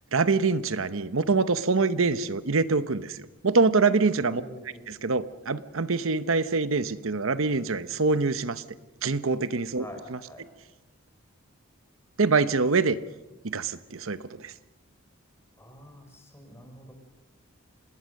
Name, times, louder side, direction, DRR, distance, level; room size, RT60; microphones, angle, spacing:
voice 1, 0.1-4.4 4.9-8.6 9.0-10.2 12.2-13.0 13.4-14.5, right 4 dB, 70° right, 14 dB, 0.9 m, -25 dB
voice 2, 4.2-4.8 9.7-10.4 15.6-16.9, equal, 10° left, 4 dB, 4.8 m, -46 dB
26.5 x 20.0 x 6.5 m, 1.1 s
head